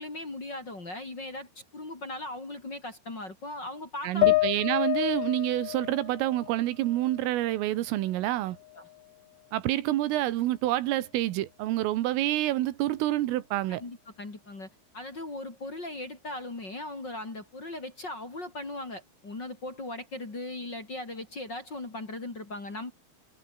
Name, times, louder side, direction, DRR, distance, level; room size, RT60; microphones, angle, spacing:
voice 1, 0.0-4.4 8.7-8.8 13.7-14.7 14.9-22.9, left 2 dB, 25° left, 3.5 m, -38 dB
voice 2, 4.0-8.6 9.5-13.8, right 15 dB, 85° right, 4.0 m, -28 dB
sound 1, 4.2-7.6 8.0-9.0, left 20 dB, 90° left, 2.4 m, -30 dB
omnidirectional pair, 5.8 m